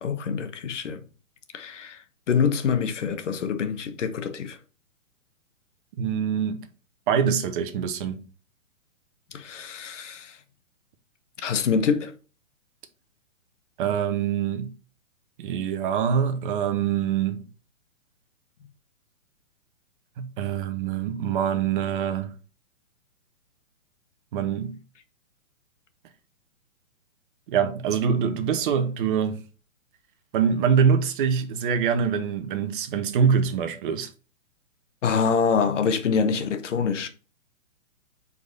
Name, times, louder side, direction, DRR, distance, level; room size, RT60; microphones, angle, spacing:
voice 1, 0.0-1.0 1.5-2.0 2.3-4.6 9.3-10.4 11.4-12.1 35.0-37.1, left 6 dB, 60° left, 1.1 m, -25 dB
voice 2, 6.0-6.7 7.1-8.2 13.8-14.7 15.4-17.4 20.2-22.3 24.3-24.8 27.5-29.4 30.3-34.1, right 7 dB, 40° right, 1.0 m, -24 dB
4.9 x 4.1 x 5.3 m
figure-of-eight pair, 125°, 40 cm